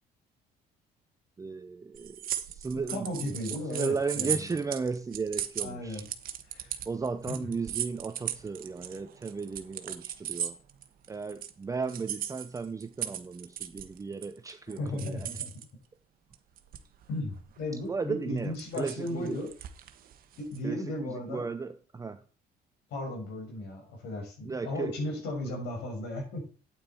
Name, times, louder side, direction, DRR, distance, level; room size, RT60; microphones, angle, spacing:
voice 1, 1.4-3.2 3.7-6.0 6.9-10.6 11.1-15.3 17.9-19.4 20.6-22.2 24.4-25.1 25.4-25.5, right 4 dB, 20° right, 0.6 m, -35 dB
sound 1, 1.9-11.5 11.9-15.6 16.3-17.0 17.4-17.6 18.4-20.6, right 10 dB, 60° right, 1.2 m, -37 dB
voice 2, 2.9-4.5 5.6-6.0 6.5-6.8 7.3-7.4 14.8-15.5 17.1-19.5 20.4-21.5 22.9-26.5, left 1 dB, 80° left, 5.7 m, -35 dB
9.0 x 8.7 x 4.4 m
cardioid pair, 110°, 17 cm